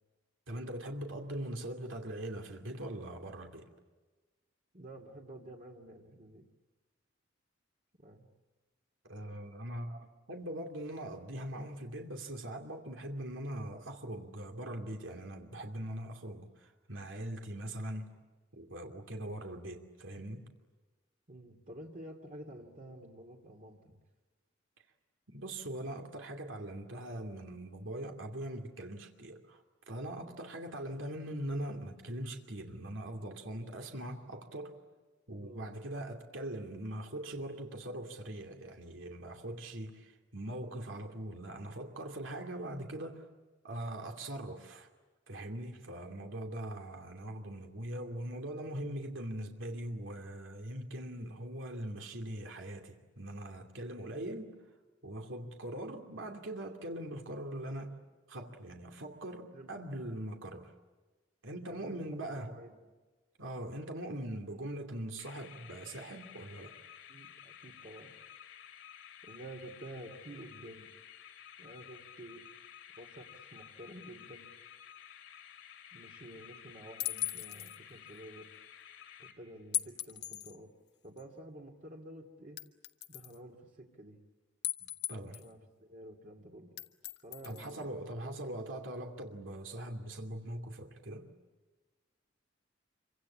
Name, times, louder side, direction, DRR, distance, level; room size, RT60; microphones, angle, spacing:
voice 1, 0.5-3.7 9.0-18.1 18.5-20.5 25.3-34.8 35.3-43.3 43.6-44.9 45.3-54.5 55.0-57.9 58.3-60.7 61.4-62.5 63.4-66.7 85.1-85.4 87.4-91.3, right 1 dB, 75° right, 3 dB, 2.7 m, -41 dB
voice 2, 4.7-6.5 8.0-8.3 21.3-24.0 30.1-30.4 35.4-35.7 45.4-45.7 59.5-60.0 61.7-62.7 67.1-68.2 69.2-70.9 71.6-72.5 73.0-74.5 75.9-78.5 79.2-80.7 81.0-82.6 83.1-84.2 84.8-84.9 85.2-86.8 87.2-88.0 88.2-88.8, right 1 dB, 40° right, 2 dB, 2.4 m, -50 dB
sound 1, 65.2-79.8, left 9 dB, 75° left, 2.9 m, -53 dB
sound 2, 77.0-77.8 79.7-80.6 81.2-81.3 82.6-83.3 84.6-85.5 86.8-87.8, left 12 dB, 60° left, 1.3 m, -37 dB
27.5 x 25.0 x 8.7 m, 1.3 s
head